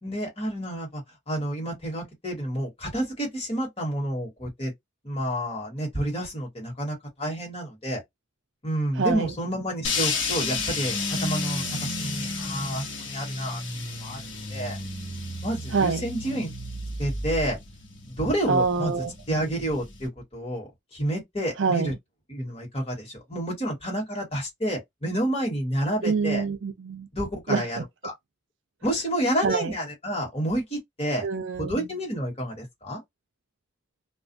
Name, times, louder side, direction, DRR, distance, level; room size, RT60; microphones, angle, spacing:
voice 1, 0.0-4.7 5.0-8.0 8.6-14.8 15.4-16.5 17.0-17.6 18.1-18.9 19.3-21.9 22.3-26.4 27.1-28.1 28.8-31.3 31.6-33.0, right 1 dB, 30° left, 1.4 m, -29 dB
voice 2, 9.0-9.3 15.7-16.0 18.5-19.5 21.6-21.9 26.0-27.1 27.5-27.6 29.4-29.7 31.2-31.9, right 4 dB, 70° right, 0.5 m, -26 dB
sound 1, 9.8-20.1, left 3 dB, 65° left, 1.0 m, -32 dB
2.4 x 2.3 x 2.6 m
head